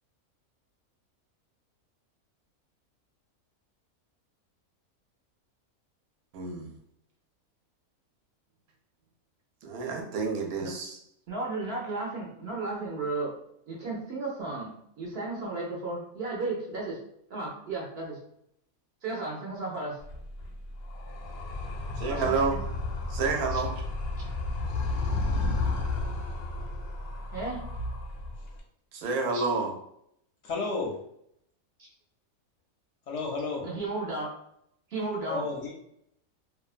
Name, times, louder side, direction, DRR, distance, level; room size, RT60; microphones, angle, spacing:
voice 1, 6.3-6.7 9.6-11.0 22.0-22.6 23.1-23.7 28.9-29.7, right 4 dB, 80° right, 2 dB, 1.0 m, -29 dB
voice 2, 11.3-13.4 13.7-17.0 17.3-18.2 19.0-20.0 22.1-22.6 23.5-23.6 24.2-24.4 27.3-27.6 29.3-29.4 33.6-34.3 34.9-35.7, right 3 dB, 55° right, -3 dB, 0.7 m, -34 dB
Animal, 20.0-28.6, left 2 dB, 90° left, 1.1 m, -32 dB
voice 3, 30.4-31.0 33.1-33.7 35.3-35.7, left 3 dB, 65° left, -1 dB, 0.8 m, -32 dB
2.7 x 2.2 x 2.4 m, 0.72 s
omnidirectional pair, 1.5 m